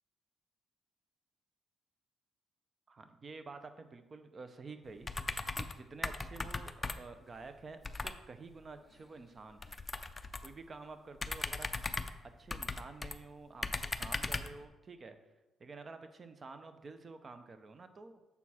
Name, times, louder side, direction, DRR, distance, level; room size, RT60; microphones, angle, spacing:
voice 1, 2.9-5.1 5.5-9.7 10.4-11.7 12.4-15.2 15.6-18.2, right 3 dB, 35° right, 9 dB, 0.6 m, -50 dB
sound 1, 5.0-5.8 6.0-7.2 7.8-8.2 9.6-10.6 11.2-13.2 13.6-14.6, left 3 dB, 25° left, 0.4 m, -38 dB
6.9 x 4.5 x 4.2 m, 1.1 s
cardioid pair, 90°, 0 cm